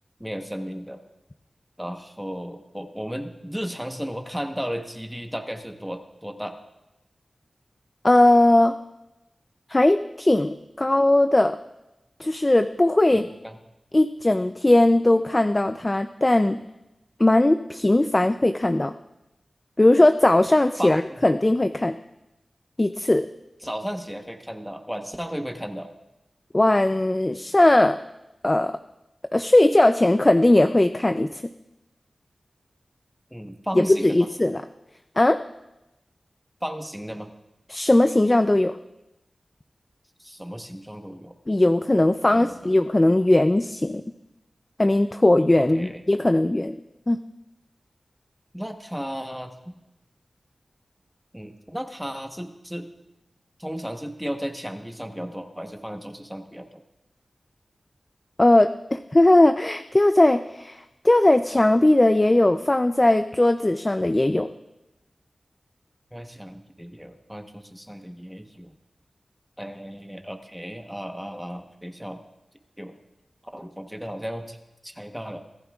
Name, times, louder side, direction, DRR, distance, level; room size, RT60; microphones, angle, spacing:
voice 1, 0.2-1.0 1.8-6.6 13.1-13.6 20.8-21.3 23.6-25.9 33.3-34.3 36.6-37.3 40.2-41.3 42.3-42.7 45.6-46.0 48.5-49.5 51.3-52.9 53.6-56.7 66.1-68.7 69.6-72.2 72.8-72.9 73.5-74.6 74.8-75.4, equal, 5° right, 5 dB, 1.1 m, -34 dB
voice 2, 8.0-8.8 9.7-10.5 10.8-11.6 12.2-13.3 13.9-16.6 17.2-18.9 19.8-21.9 22.8-23.3 26.5-28.0 28.4-28.7 29.3-31.4 33.7-34.6 35.2-35.4 37.7-38.7 41.5-44.0 44.8-46.8 47.1-47.2 58.4-64.5, left 1 dB, 25° left, 9 dB, 0.4 m, -19 dB
24.5 x 14.5 x 2.4 m, 0.95 s
wide cardioid pair, 80°, 0 cm